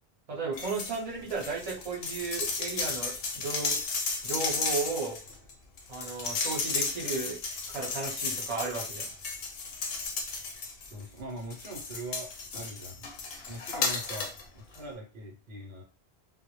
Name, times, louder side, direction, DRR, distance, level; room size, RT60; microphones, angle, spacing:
voice 1, 0.3-3.8 4.2-5.2 5.9-7.4 7.7-9.1, right 4 dB, 40° right, -3 dB, 0.8 m, -34 dB
sound 1, 0.5-1.0 1.3-11.0 11.5-14.4 14.7-14.8, left 4 dB, 70° left, 0.8 m, -34 dB
voice 2, 10.8-13.1 13.5-15.8, right 1 dB, 75° right, 0 dB, 0.9 m, -42 dB
2.1 x 2.0 x 2.9 m, 0.33 s
omnidirectional pair, 1.1 m